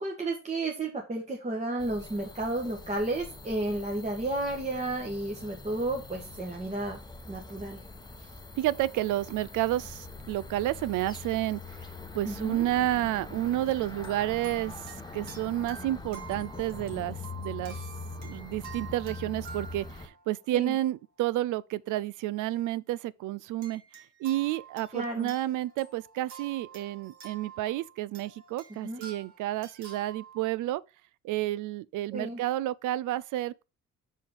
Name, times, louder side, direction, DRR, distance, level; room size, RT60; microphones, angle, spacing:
voice 1, 0.0-7.0 7.3-7.8 12.2-12.6 20.5-20.7 24.9-25.3 28.8-29.0 32.1-32.4, right 2 dB, 25° right, 1.4 m, -32 dB
sound 1, 1.8-20.1, left 3 dB, 15° left, 0.9 m, -43 dB
voice 2, 8.6-11.6 12.1-14.9 15.1-17.7 18.2-23.8 24.2-30.8 31.2-33.6, right 15 dB, 85° right, 0.5 m, -30 dB
sound 2, 13.4-21.2 21.9-22.1 23.6-30.5, right 6 dB, 70° right, 2.6 m, -49 dB
5.8 x 4.9 x 5.2 m
cardioid pair, 90°, 30 cm